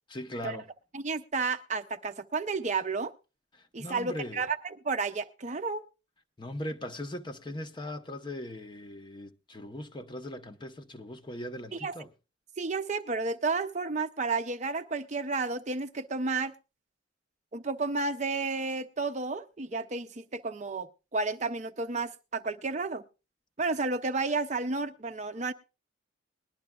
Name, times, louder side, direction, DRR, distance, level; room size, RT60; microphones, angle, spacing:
voice 1, 0.1-0.7 3.5-4.4 6.4-12.1, left 1 dB, 25° left, 0.7 m, -39 dB
voice 2, 0.9-3.1 3.7-5.8 11.8-11.9 12.6-16.5 17.5-23.0 23.6-25.5, right 3 dB, 35° right, 0.6 m, -32 dB
20.5 x 11.5 x 2.3 m
head